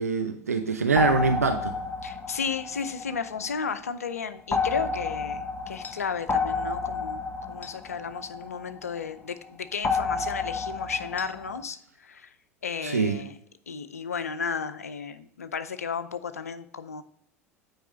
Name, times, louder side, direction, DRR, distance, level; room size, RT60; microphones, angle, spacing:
voice 1, 0.0-1.8 12.8-13.2, right 4 dB, 80° right, 7 dB, 0.5 m, -24 dB
sound 1, 1.0-3.7 4.5-9.0 9.8-11.6, left 4 dB, 20° left, 0.7 m, -31 dB
voice 2, 2.0-7.2 7.5-12.3 12.6-13.4 13.7-17.0, left 6 dB, 75° left, 11 dB, 0.5 m, -33 dB
9.0 x 4.8 x 3.1 m, 0.70 s
figure-of-eight pair, 75°, 8 cm